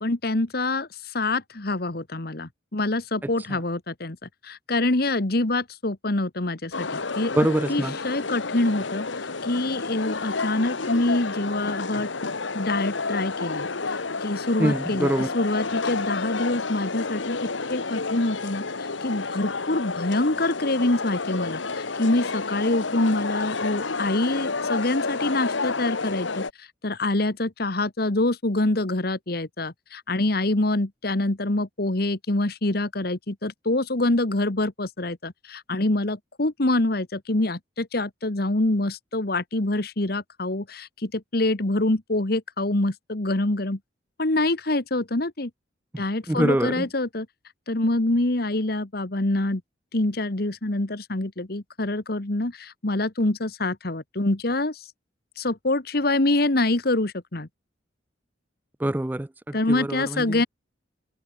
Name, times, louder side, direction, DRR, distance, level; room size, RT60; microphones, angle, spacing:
voice 1, 0.0-4.2 4.4-7.3 7.7-9.0 9.4-12.1 12.5-15.1 15.3-43.8 44.2-45.5 46.0-47.3 47.7-49.6 49.9-54.8 55.4-57.5 59.5-60.5, left 2 dB, 55° left, 1.5 m, -25 dB
voice 2, 3.2-3.6 7.4-8.0 14.6-15.3 45.9-46.9 58.8-60.4, right 1 dB, 10° right, 0.3 m, -25 dB
sound 1, 6.7-26.5, left 4 dB, 85° left, 1.7 m, -30 dB
head